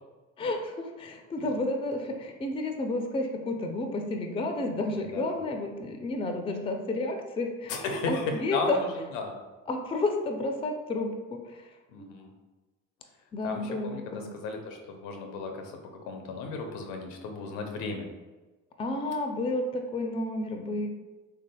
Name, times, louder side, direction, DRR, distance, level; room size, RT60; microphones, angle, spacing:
voice 1, 0.4-8.8 9.7-11.7 12.0-12.1 13.3-14.3 18.8-20.9, left 2 dB, 15° left, 4 dB, 0.5 m, -31 dB
voice 2, 4.9-5.4 7.7-9.4 11.9-12.3 13.4-15.7 16.0-18.1, left 3 dB, 70° left, 4 dB, 0.7 m, -35 dB
3.6 x 3.4 x 2.2 m, 1.2 s
hypercardioid pair, 60°, 39 cm